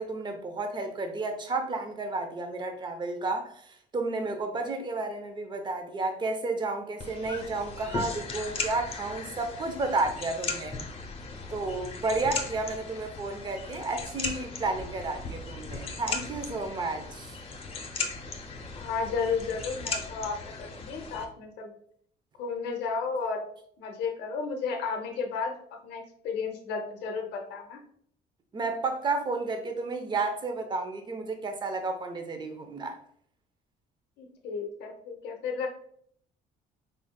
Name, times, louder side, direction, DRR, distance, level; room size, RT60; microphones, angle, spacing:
voice 1, 0.0-10.8 11.5-17.4 28.5-33.0, right 3 dB, 25° right, 6 dB, 0.7 m, -32 dB
sound 1, 7.0-21.2, left 3 dB, 35° left, 0.7 m, -37 dB
voice 2, 18.7-21.7 22.4-23.4 23.8-25.5 25.8-27.8 34.2-35.8, left 5 dB, 85° left, 3 dB, 0.7 m, -33 dB
3.8 x 3.7 x 2.2 m, 0.63 s
cardioid pair, 110°, 17 cm